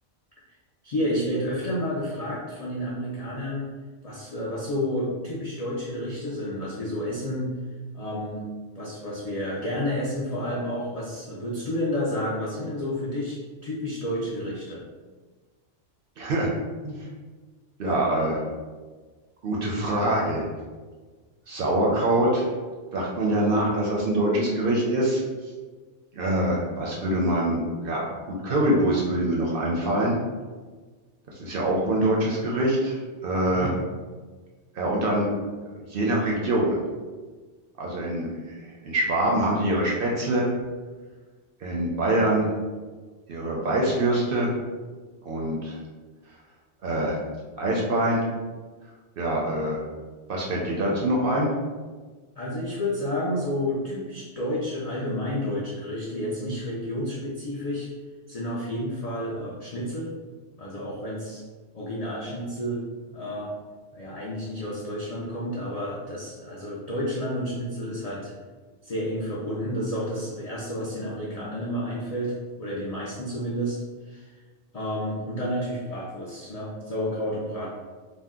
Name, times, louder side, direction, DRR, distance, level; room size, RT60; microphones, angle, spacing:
voice 1, 0.8-3.7 4.0-7.5 7.9-8.4 8.7-14.8 33.4-33.8 52.4-57.9 58.3-60.1 60.6-61.4 61.7-62.8 63.1-63.5 63.9-68.3 68.8-73.8 74.1-74.3 74.7-77.7, equal, 65° left, -6 dB, 0.4 m, -30 dB
voice 2, 16.2-16.5 16.8-17.0 17.8-18.4 19.4-20.4 21.5-22.5 22.9-25.2 26.1-30.2 31.4-33.7 34.7-35.3 35.7-36.8 37.8-40.5 41.6-42.5 43.3-44.5 45.2-45.8 46.8-47.1 47.6-48.2 49.2-49.8 50.3-51.5, right 1 dB, 60° right, -3 dB, 0.6 m, -24 dB
2.6 x 2.1 x 3.5 m, 1.4 s
omnidirectional pair, 1.2 m